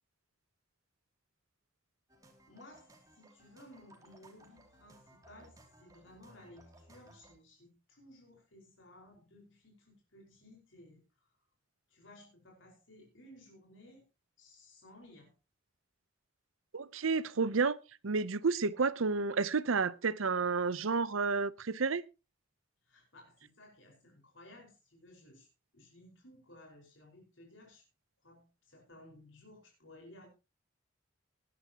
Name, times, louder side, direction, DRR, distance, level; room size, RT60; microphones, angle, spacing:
sound 1, 2.1-7.3, right 1 dB, 15° right, 2.8 m, -61 dB
voice 1, 2.5-11.3 11.9-14.1 14.4-15.3 22.8-25.5 25.7-27.8 28.2-30.3, left 1 dB, 70° left, 5.1 m, -57 dB
voice 2, 16.7-17.8 18.0-22.0, right 4 dB, 85° right, 0.7 m, -31 dB
20.0 x 10.5 x 3.0 m
head